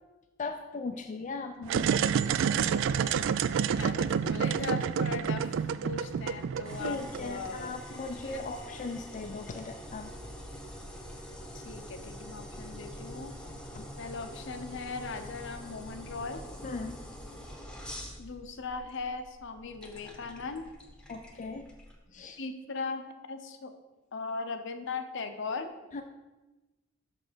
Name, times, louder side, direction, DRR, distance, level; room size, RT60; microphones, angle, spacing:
voice 1, 0.4-1.9 6.8-10.1 13.7-13.9 16.6-17.0 21.1-21.7 22.1-22.4 25.9-26.0, left 3 dB, 40° left, 5 dB, 0.4 m, -38 dB
sound 1, 1.6-7.5, right 7 dB, 65° right, 0.3 m, -28 dB
voice 2, 3.6-7.7 8.2-8.5 11.5-13.4 14.0-16.4 18.2-20.7 22.4-23.7 24.1-25.7, left 4 dB, 65° left, 8 dB, 0.7 m, -39 dB
sound 2, 6.6-22.0, equal, 5° left, 0.9 m, -45 dB
6.2 x 6.0 x 5.1 m, 1.1 s
head